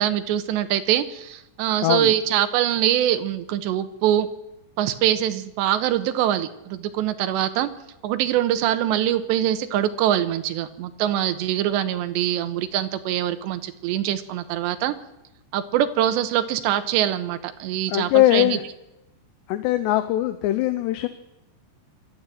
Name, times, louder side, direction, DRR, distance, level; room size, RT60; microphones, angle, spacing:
voice 1, 0.0-4.3 4.8-7.7 8.0-15.0 15.5-18.6, right 11 dB, 80° right, 10 dB, 3.2 m, -23 dB
voice 2, 1.8-2.1 17.9-18.6 19.5-21.1, left 14 dB, 80° left, 10 dB, 2.9 m, -21 dB
25.0 x 13.0 x 9.1 m, 0.94 s
omnidirectional pair, 5.2 m